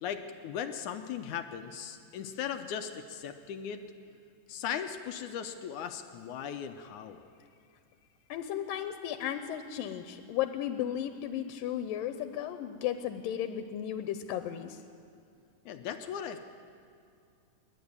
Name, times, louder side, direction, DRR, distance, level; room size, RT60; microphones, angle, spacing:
voice 1, 0.0-3.9 4.5-7.3 15.7-16.4, left 8 dB, 75° left, 7 dB, 2.0 m, -38 dB
voice 2, 8.3-14.8, left 10 dB, 90° left, 9 dB, 2.5 m, -35 dB
26.0 x 11.5 x 9.6 m, 2.4 s
omnidirectional pair, 3.9 m